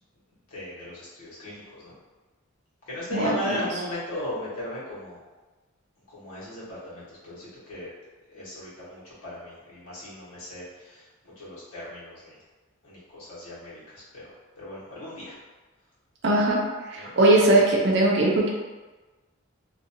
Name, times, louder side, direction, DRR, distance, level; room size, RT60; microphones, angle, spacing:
voice 1, 0.5-2.0 2.9-5.2 6.1-7.9 8.3-12.3 12.8-14.2 14.6-15.3 16.9-17.1, left 1 dB, 80° left, -9 dB, 1.2 m, -37 dB
voice 2, 3.1-3.6 16.2-16.6 16.9-18.5, right 2 dB, 50° right, -2 dB, 0.5 m, -20 dB
2.7 x 2.4 x 2.7 m, 1.2 s
head